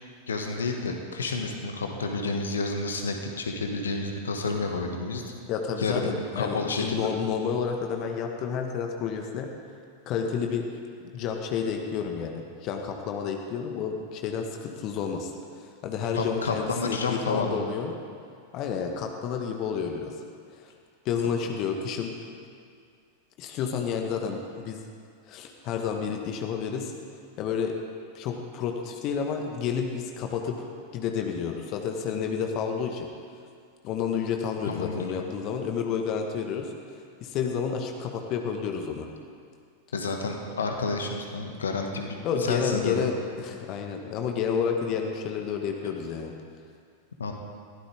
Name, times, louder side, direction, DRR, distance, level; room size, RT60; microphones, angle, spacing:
voice 1, 0.3-5.2 5.8-7.1 16.1-17.6 34.7-35.3 39.9-42.9 47.2-47.3, left 3 dB, 70° left, 3 dB, 1.7 m, -30 dB
voice 2, 5.5-9.5 10.0-10.7 11.1-17.9 18.5-20.2 20.5-20.7 21.0-22.1 23.4-24.8 25.3-26.9 27.4-27.8 28.1-30.6 30.9-33.1 33.8-39.1 42.2-46.3, left 6 dB, 40° left, 3 dB, 1.5 m, -30 dB
21.5 x 16.0 x 3.6 m, 2.2 s
figure-of-eight pair, 90°, 0 cm